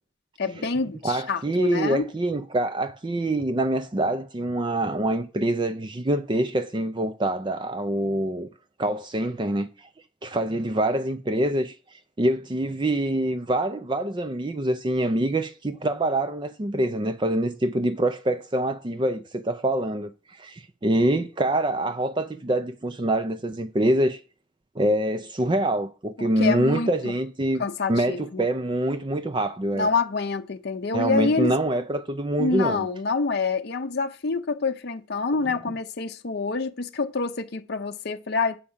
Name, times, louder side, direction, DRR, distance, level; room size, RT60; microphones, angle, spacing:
voice 1, 0.4-2.1 26.2-26.9 27.6-28.5 29.7-31.5 32.4-38.6, left 4 dB, 55° left, 0.6 m, -27 dB
voice 2, 1.0-8.5 8.8-9.9 10.2-11.7 12.2-24.2 24.8-27.6 27.9-29.9 30.9-32.9, right 1 dB, 25° right, 0.5 m, -25 dB
8.6 x 4.9 x 7.2 m
head